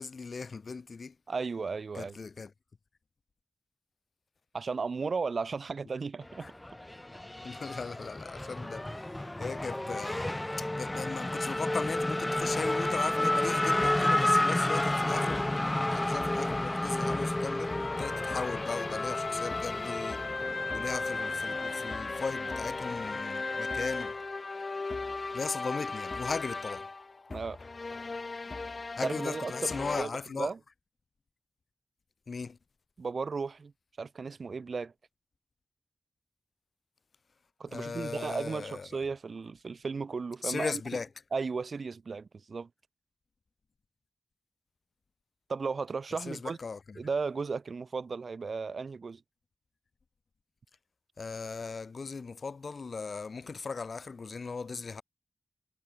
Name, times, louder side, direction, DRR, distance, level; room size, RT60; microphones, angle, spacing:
voice 1, 0.0-1.1 1.9-2.5 7.4-9.1 9.4-10.3 10.6-17.7 18.0-20.2 20.7-24.2 25.3-26.9 29.0-30.5 32.3-32.6 37.7-38.9 40.4-41.1 46.3-47.0 51.2-55.0, left 4 dB, 65° left, 4.5 m, -37 dB
voice 2, 1.3-2.2 4.5-6.5 27.3-27.6 29.0-30.6 33.0-33.7 34.0-34.9 37.6-40.8 41.3-42.7 45.5-46.6 46.9-49.2, right 4 dB, 65° right, 2.9 m, -35 dB
Race car auto racing / Accelerating revving vroom, 6.2-23.2, left 1 dB, 15° left, 0.9 m, -31 dB
sound 1, 13.4-30.0, left 3 dB, 50° left, 2.0 m, -36 dB
wide cardioid pair, 90°, 0 cm